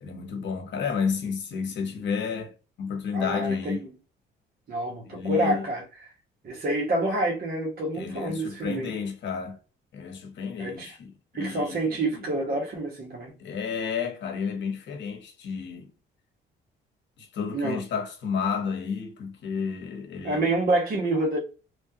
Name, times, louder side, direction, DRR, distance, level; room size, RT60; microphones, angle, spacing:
voice 1, 0.0-3.9 5.1-5.6 7.9-9.6 9.9-12.2 13.4-15.9 17.2-20.5, left 6 dB, 65° left, 0.9 m, -31 dB
voice 2, 3.1-3.9 4.7-5.8 6.4-8.9 10.6-10.9 11.3-13.3 17.5-17.8 20.2-21.4, right 1 dB, 50° right, 1.0 m, -27 dB
3.1 x 2.2 x 2.7 m
cardioid pair, 90°, 20 cm